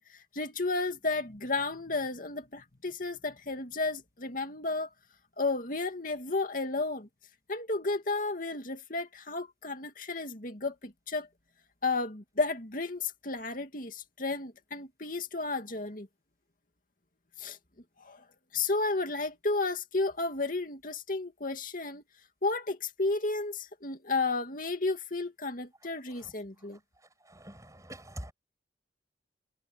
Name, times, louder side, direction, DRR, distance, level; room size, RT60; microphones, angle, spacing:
voice 1, 0.0-4.9 5.4-7.1 7.5-11.3 11.8-16.1 17.4-17.6 18.0-18.2 18.5-22.0 22.4-26.8, left 3 dB, 50° left, 2.6 m, -32 dB
voice 2, 27.3-28.3, right 1 dB, 20° right, 7.8 m, -44 dB
head